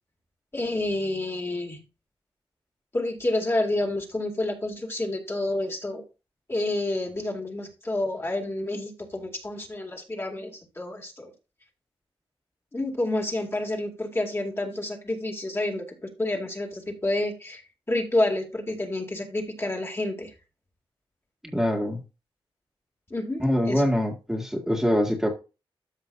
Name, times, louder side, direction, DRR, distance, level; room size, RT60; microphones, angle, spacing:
voice 1, 0.5-1.8 2.9-6.0 6.5-11.3 12.7-17.6 17.9-20.3 23.1-23.8, left 2 dB, 25° left, 1 dB, 2.3 m, -29 dB
voice 2, 21.5-22.0 23.4-25.3, equal, 5° right, 0 dB, 1.9 m, -24 dB
13.5 x 5.5 x 2.6 m, 0.29 s
cardioid pair, 90°, 10 cm